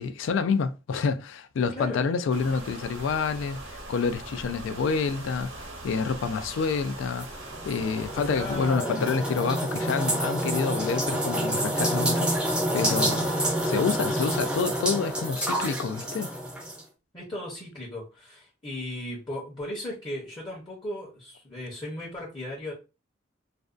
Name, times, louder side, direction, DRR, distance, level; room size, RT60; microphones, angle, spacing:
voice 1, 0.0-13.4 13.6-16.3, left 5 dB, 70° left, 0.3 m, -28 dB
sound 1, 2.3-8.7, right 2 dB, 90° right, 0.9 m, -41 dB
sound 2, 7.2-16.8, right 1 dB, 5° right, 0.5 m, -28 dB
voice 2, 8.3-9.1 17.1-22.7, left 1 dB, 25° left, 0.7 m, -36 dB
2.5 x 2.2 x 2.4 m
head